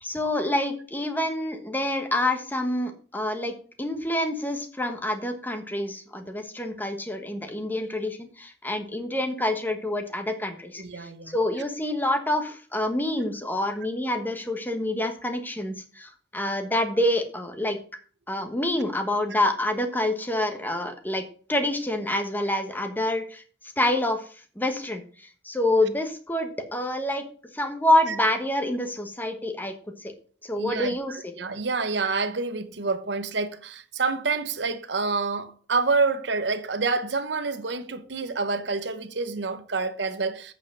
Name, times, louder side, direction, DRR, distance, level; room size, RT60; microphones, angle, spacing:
voice 1, 0.0-17.8 18.3-21.2 21.5-23.4 23.8-24.2 24.6-27.2 27.5-29.7 30.0-30.1 30.4-31.3, left 1 dB, 10° left, 1.2 m, -27 dB
voice 2, 10.8-11.3 19.3-19.4 28.1-28.2 30.6-31.0 31.4-40.5, right 4 dB, 70° right, 1.0 m, -28 dB
8.2 x 5.1 x 6.4 m
head